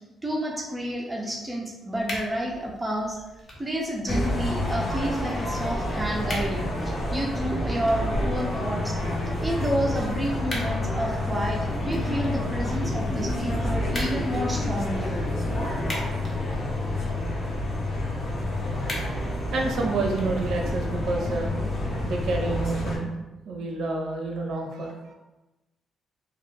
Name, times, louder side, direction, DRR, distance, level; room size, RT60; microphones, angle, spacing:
voice 1, 0.2-3.2 3.6-9.0 9.4-15.1, equal, 15° right, -2 dB, 0.4 m, -30 dB
sound 1, 1.9-20.9, left 1 dB, 40° left, 0.7 m, -43 dB
sound 2, 4.1-23.0, left 1 dB, 80° left, 0.6 m, -28 dB
voice 2, 18.2-18.6 19.5-21.5 22.0-23.2 23.4-25.1, right 3 dB, 70° right, 1 dB, 0.5 m, -29 dB
2.1 x 2.0 x 3.0 m, 1.0 s
cardioid pair, 90°, 0 cm